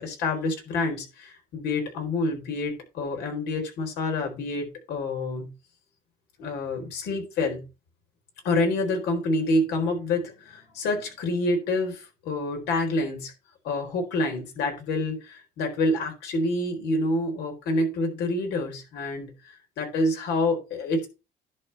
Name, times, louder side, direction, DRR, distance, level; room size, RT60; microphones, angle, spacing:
voice 1, 0.0-5.5 6.4-7.6 8.4-13.3 13.6-21.1, left 2 dB, 80° left, 4.2 m, -27 dB
11.0 x 4.1 x 6.7 m
cardioid pair, 110°, 17 cm